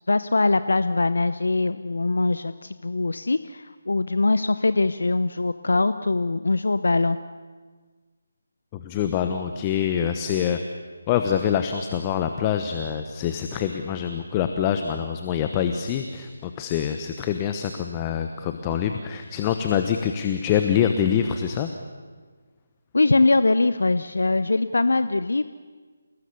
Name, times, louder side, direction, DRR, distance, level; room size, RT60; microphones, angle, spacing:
voice 1, 0.1-7.2 22.9-25.4, left 3 dB, 65° left, 13 dB, 0.7 m, -22 dB
voice 2, 8.7-10.6 11.1-21.7, left 9 dB, 20° left, 7 dB, 1.1 m, -25 dB
29.0 x 19.0 x 6.9 m, 1.5 s
figure-of-eight pair, 155°, 0 cm